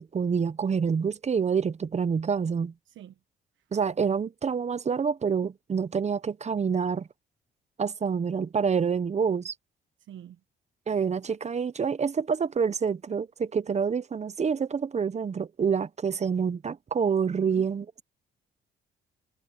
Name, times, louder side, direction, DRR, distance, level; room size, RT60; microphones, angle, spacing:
voice 1, 0.0-2.7 3.7-7.1 7.8-9.5 10.9-18.0, right 6 dB, 35° right, 0.8 m, -27 dB
voice 2, 2.9-3.2 3.6-3.7 10.0-10.4 17.5-17.7, right 11 dB, 75° right, 1.2 m, -46 dB
cardioid pair, 90°, 20 cm